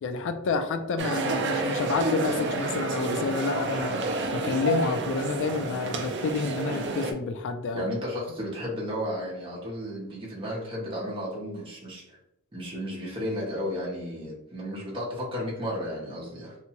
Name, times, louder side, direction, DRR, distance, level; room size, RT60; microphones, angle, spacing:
voice 1, 0.0-3.9 4.4-7.9, left 3 dB, 60° left, 9 dB, 0.3 m, -29 dB
sound 1, 1.0-7.1, right 2 dB, 55° right, 0.4 m, -29 dB
voice 2, 7.7-12.2 12.5-16.6, equal, 25° right, -5 dB, 0.7 m, -33 dB
2.8 x 2.2 x 2.8 m, 0.83 s
head